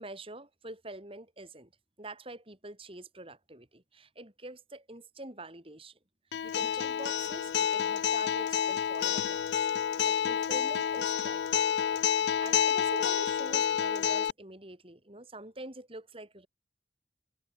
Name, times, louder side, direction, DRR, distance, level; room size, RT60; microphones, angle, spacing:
voice 1, 0.0-1.7 2.0-6.0 6.4-9.5 10.1-11.6 12.2-16.5, right 2 dB, 30° right, 4.2 m, -46 dB
Acoustic guitar, 6.3-14.3, left 9 dB, 70° left, 0.3 m, -29 dB
head